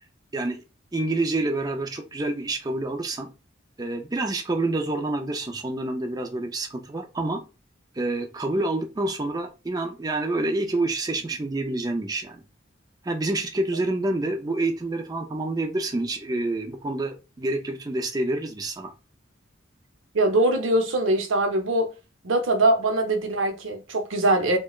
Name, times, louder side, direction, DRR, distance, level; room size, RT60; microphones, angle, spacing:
voice 1, 0.3-0.6 0.9-3.3 3.8-7.4 8.0-12.4 13.0-18.9, right 2 dB, 20° right, 0.4 m, -27 dB
voice 2, 20.1-21.9 22.2-24.6, right 2 dB, 80° right, 0.7 m, -22 dB
4.8 x 2.2 x 2.3 m
head